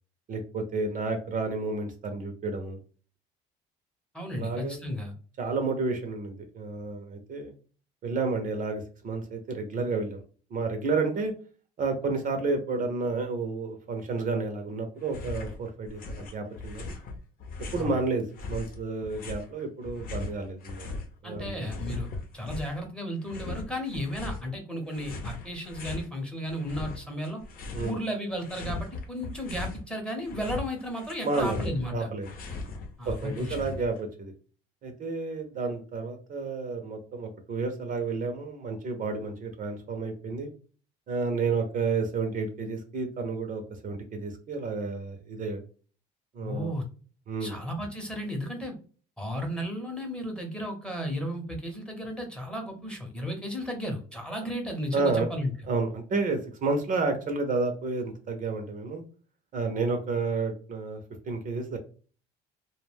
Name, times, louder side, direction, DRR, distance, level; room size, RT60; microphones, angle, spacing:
voice 1, 0.3-2.8 4.3-4.8 5.4-7.5 8.0-10.2 10.5-11.3 11.8-16.9 17.7-20.9 21.2-21.7 27.7-27.9 31.2-32.3 33.1-34.3 34.8-40.5 41.1-45.6 46.3-46.7 47.3-47.6 54.9-55.3 55.7-59.0 59.5-61.0 61.3-61.8, right 3 dB, 45° right, 5 dB, 0.7 m, -31 dB
voice 2, 4.1-5.1 17.8-18.0 21.2-22.1 22.3-27.4 27.8-32.1 33.0-33.8 46.4-46.8 47.4-48.7 49.2-55.5, equal, 5° left, 2 dB, 0.9 m, -34 dB
sound 1, 15.0-15.6 15.8-17.9 18.4-21.1 21.3-22.8 23.2-24.4 24.9-26.1 26.5-28.0 28.3-29.8 30.1-34.0, left 3 dB, 50° left, 0.7 m, -38 dB
2.2 x 2.2 x 3.3 m, 0.39 s
supercardioid pair, 90°, 19 cm